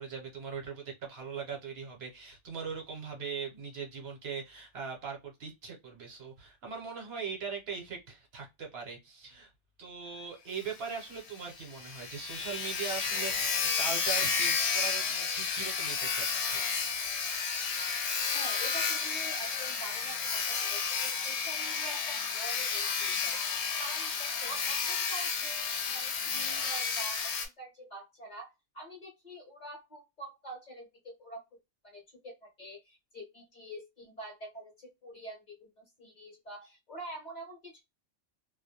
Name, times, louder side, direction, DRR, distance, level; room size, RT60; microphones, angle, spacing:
voice 1, 0.0-9.5 9.8-17.1, right 6 dB, 60° right, 0.9 m, -40 dB
Sawing, 10.6-10.7 11.0-11.1 11.5-11.6 11.7-27.5, left 5 dB, 70° left, 0.9 m, -31 dB
voice 2, 18.3-31.4 31.8-37.8, right 1 dB, 40° left, 0.9 m, -46 dB
2.3 x 2.1 x 2.7 m
omnidirectional pair, 1.2 m